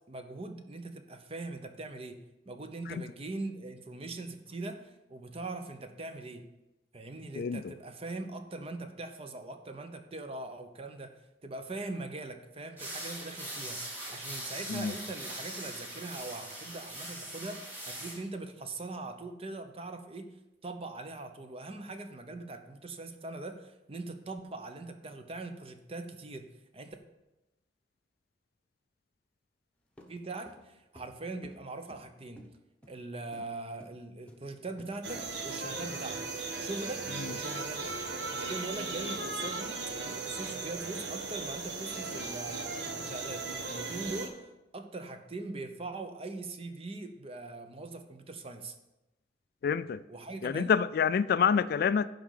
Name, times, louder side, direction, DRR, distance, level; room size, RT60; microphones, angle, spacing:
voice 1, 0.1-2.2 2.5-6.5 6.9-11.1 11.4-20.3 20.6-27.0 30.1-32.5 32.9-36.3 36.6-38.0 38.3-39.8 40.1-48.7 50.1-50.7, right 2 dB, 35° right, 7 dB, 0.8 m, -41 dB
found djembe pet, 12.8-18.2, right 1 dB, 10° right, 2.4 m, -41 dB
sound 1, 30.0-32.1 32.4-32.5 32.8-33.0 33.3-33.5 33.8-34.0 34.3-35.0 35.2-36.2, equal, 5° left, 1.0 m, -55 dB
sound 2, 35.0-44.3, right 3 dB, 75° right, 1.3 m, -37 dB
voice 2, 49.6-50.0 50.4-52.1, left 6 dB, 60° left, 16 dB, 0.3 m, -27 dB
10.5 x 3.7 x 7.4 m, 0.95 s
head